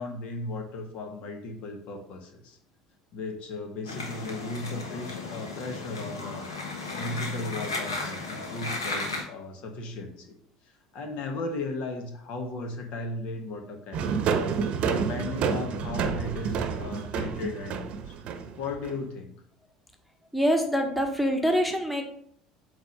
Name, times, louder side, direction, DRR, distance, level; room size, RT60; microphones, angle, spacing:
voice 1, 0.0-2.6 3.1-6.5 6.9-10.4 10.9-14.3 14.8-18.2 18.6-19.3, left 2 dB, 55° left, 4 dB, 1.4 m, -36 dB
sound 1, 3.8-9.2, left 3 dB, 90° left, 1.3 m, -35 dB
sound 2, 13.9-18.9, right 6 dB, 55° right, 0.8 m, -29 dB
voice 2, 20.3-22.0, equal, ahead, 3 dB, 1.3 m, -25 dB
8.0 x 3.4 x 5.4 m, 0.66 s
hypercardioid pair, 70°, 2 cm